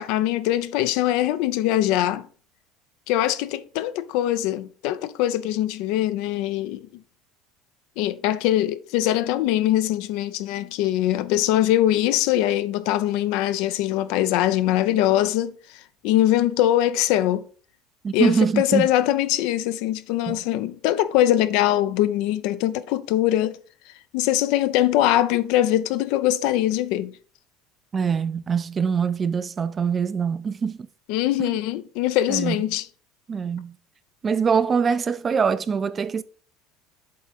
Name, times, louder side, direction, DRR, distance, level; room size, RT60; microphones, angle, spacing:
voice 1, 0.0-2.3 3.1-6.9 8.0-17.4 18.1-23.6 24.1-27.1 31.1-32.9, left 13 dB, 70° left, 0.4 m, -22 dB
voice 2, 18.0-18.9 20.3-20.4 27.9-30.9 31.4-31.6 32.3-32.6 33.3-33.8 34.2-36.2, right 6 dB, 30° right, 0.4 m, -23 dB
7.6 x 3.5 x 4.0 m
supercardioid pair, 95°, 0 cm